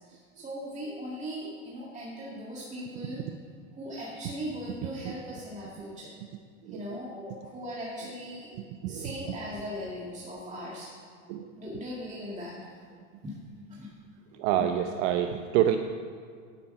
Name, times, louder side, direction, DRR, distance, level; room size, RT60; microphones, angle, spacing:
voice 1, 0.1-3.2 3.7-6.1 6.7-8.6 8.9-10.9 11.6-12.6 13.2-13.4 13.6-13.9 14.6-14.7, equal, 20° right, -5 dB, 1.9 m, -39 dB
voice 2, 6.6-7.0 8.8-9.2 11.3-11.5 14.4-15.8, right 11 dB, 60° right, 7 dB, 0.7 m, -28 dB
9.0 x 8.6 x 5.5 m, 2.1 s
supercardioid pair, 115°, 39 cm